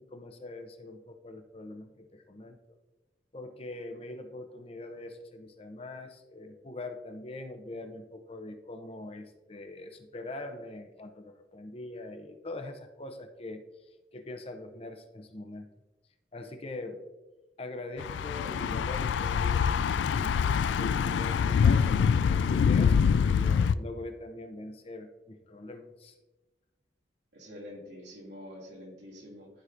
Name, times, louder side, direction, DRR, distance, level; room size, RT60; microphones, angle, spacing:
voice 1, 0.0-2.6 3.3-13.7 14.1-15.7 16.3-17.0 17.6-26.1, left 2 dB, 30° left, 6 dB, 0.6 m, -43 dB
Thunder / Bicycle, 18.0-23.7, left 6 dB, 85° left, 0.3 m, -25 dB
voice 2, 27.3-29.5, left 1 dB, 80° right, -4 dB, 2.6 m, -46 dB
12.5 x 4.8 x 2.6 m, 1.1 s
head